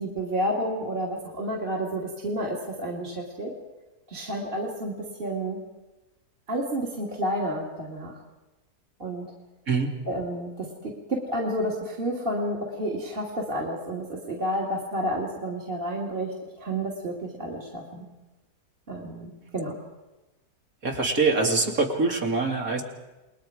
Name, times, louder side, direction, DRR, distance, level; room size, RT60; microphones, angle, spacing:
voice 1, 0.0-3.5 4.1-4.9 5.2-5.6 6.5-8.1 9.0-9.3 10.1-18.0 18.9-19.7, right 1 dB, 35° right, -2 dB, 2.7 m, -30 dB
voice 2, 20.8-22.8, right 3 dB, 60° right, 1 dB, 3.1 m, -24 dB
29.5 x 21.0 x 5.0 m, 1.1 s
omnidirectional pair, 1.7 m